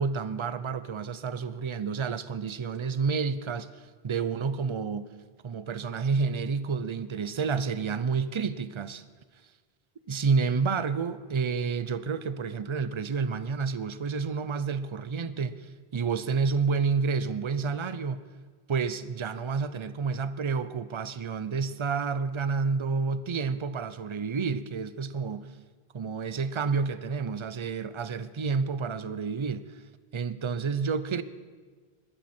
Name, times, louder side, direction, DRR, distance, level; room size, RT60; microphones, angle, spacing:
voice 1, 0.0-5.1 5.4-9.0 10.1-18.2 18.7-25.5 25.9-29.8 30.1-31.2, right 5 dB, 35° right, 0.5 m, -29 dB
21.0 x 12.5 x 4.3 m
omnidirectional pair, 1.0 m